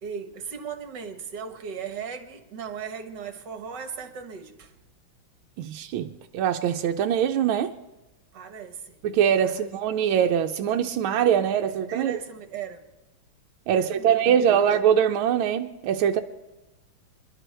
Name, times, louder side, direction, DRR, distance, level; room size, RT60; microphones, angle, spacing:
voice 1, 0.0-4.8 8.3-9.0 9.4-9.7 11.9-12.9 13.7-14.7, right 6 dB, 60° right, 7 dB, 1.9 m, -37 dB
voice 2, 5.6-7.7 9.0-12.2 13.7-16.2, right 8 dB, 85° right, 5 dB, 1.5 m, -23 dB
27.0 x 11.5 x 3.3 m, 1.0 s
omnidirectional pair, 2.2 m